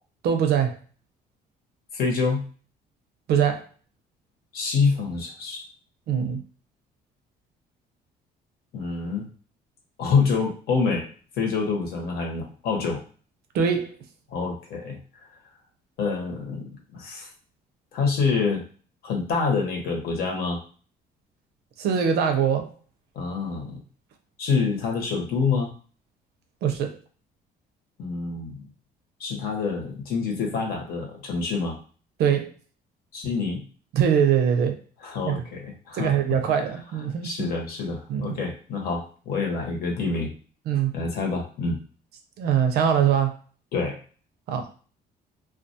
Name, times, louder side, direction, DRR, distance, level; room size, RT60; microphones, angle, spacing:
voice 1, 0.2-0.8 3.3-3.7 6.1-6.4 13.5-14.0 21.8-22.7 26.6-27.0 32.2-32.5 33.9-34.8 35.2-35.5 35.9-37.5 38.1-38.4 40.7-40.9 42.4-43.4 44.5-44.7, right 8 dB, 75° right, 6 dB, 0.5 m, -22 dB
voice 2, 1.9-2.4 4.5-5.6 8.7-9.3 10.0-11.1 11.4-13.0 14.3-15.0 16.0-17.3 17.9-18.6 19.0-20.6 23.1-23.8 24.4-25.7 28.0-28.7 29.2-31.8 33.1-33.6 35.0-36.1 37.2-40.3 40.9-41.8 43.7-44.0, left 4 dB, 65° left, 1 dB, 0.9 m, -26 dB
2.2 x 2.2 x 2.7 m, 0.40 s
cardioid pair, 110°, 17 cm